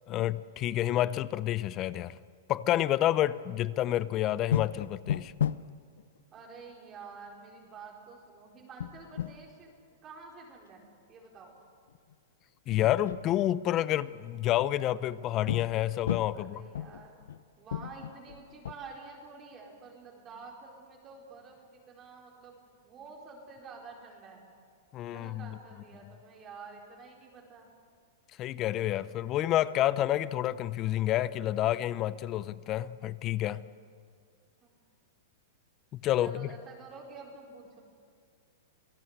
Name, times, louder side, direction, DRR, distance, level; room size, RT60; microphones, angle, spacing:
voice 1, 0.1-2.1 2.5-5.3 12.7-16.6 24.9-25.5 28.4-33.6 36.0-36.5, left 13 dB, 30° left, 17 dB, 0.7 m, -29 dB
sound 1, 4.5-5.7 6.0-6.1 6.4-6.5 8.8-9.4 11.9-12.1 12.7-13.3 15.5-15.8 16.1-16.4 16.7-17.4 17.7-18.7, left 10 dB, 85° left, 0.7 m, -33 dB
voice 2, 6.3-9.7 10.0-10.8 11.1-11.6 16.3-17.2 17.6-22.6 22.8-24.5 25.1-27.7 34.6-34.7 36.2-37.8, right 4 dB, 25° right, -1 dB, 4.3 m, -49 dB
27.0 x 18.0 x 8.1 m, 2.1 s
hypercardioid pair, 140°, 0 cm